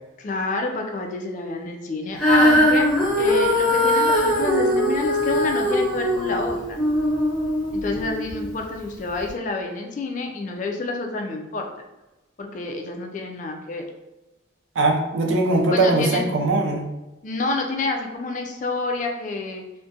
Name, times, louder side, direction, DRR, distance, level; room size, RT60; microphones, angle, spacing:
voice 1, 0.2-6.8 7.7-11.7 12.4-13.9 15.7-16.3 17.2-19.6, left 3 dB, 40° left, 3 dB, 0.3 m, -28 dB
Female singing, 2.2-8.5 9.2-9.3, left 1 dB, 5° left, 0.6 m, -20 dB
voice 2, 14.8-16.9, right 2 dB, 80° right, 2 dB, 0.4 m, -20 dB
2.4 x 2.1 x 2.6 m, 1.0 s
head